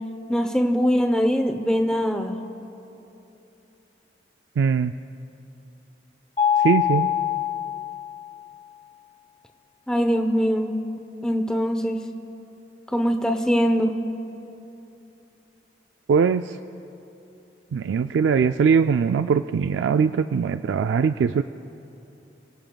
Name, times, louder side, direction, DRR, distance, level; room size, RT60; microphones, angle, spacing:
voice 1, 0.3-2.4 9.9-10.7 11.2-12.0 12.9-13.9, equal, 5° left, 5 dB, 0.7 m, -22 dB
voice 2, 4.6-4.9 6.6-7.1 16.1-16.6 17.7-21.4, right 6 dB, 80° right, 9 dB, 0.3 m, -21 dB
Mallet percussion, 6.4-8.3, left 9 dB, 30° left, 2.4 m, -24 dB
29.0 x 17.5 x 2.3 m, 2.9 s
head